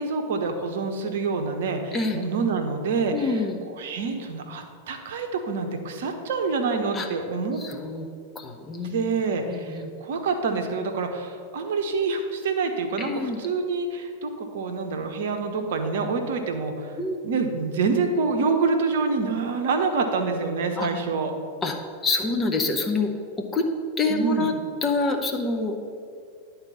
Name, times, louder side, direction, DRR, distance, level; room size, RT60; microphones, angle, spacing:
voice 1, 0.0-3.4 3.8-7.6 8.8-17.0 17.2-21.3 24.1-24.5, right 4 dB, 55° right, 5 dB, 0.8 m, -26 dB
voice 2, 3.1-3.7 6.9-7.1 7.6-8.1 8.3-9.0 9.5-9.9 13.0-13.4 17.0-17.3 20.8-20.9 21.6-21.8 22.0-23.1 23.4-23.7 24.0-24.5 24.8-25.8, left 3 dB, 20° left, 3 dB, 0.8 m, -26 dB
10.5 x 4.0 x 5.5 m, 2.2 s
figure-of-eight pair, 90°, 0 cm